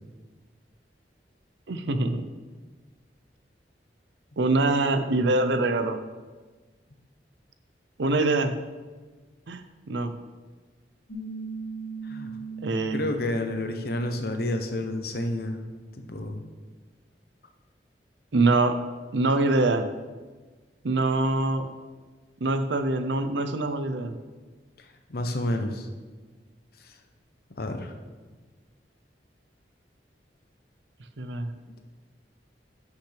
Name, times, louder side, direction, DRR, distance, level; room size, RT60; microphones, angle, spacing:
voice 1, 1.7-2.2 4.4-6.0 8.0-8.5 9.5-10.1 12.6-13.0 18.3-18.8 19.1-19.9 20.8-21.7 22.4-24.2 31.2-31.5, right 2 dB, 80° right, 9 dB, 0.6 m, -24 dB
Piano, 11.1-16.2, right 4 dB, 85° left, 2.2 m, -40 dB
voice 2, 12.0-12.4 12.9-15.6 16.0-16.4 24.8-25.9 26.8-27.0 27.5-27.9, left 1 dB, 60° left, 6 dB, 0.8 m, -30 dB
12.0 x 5.8 x 3.4 m, 1.3 s
head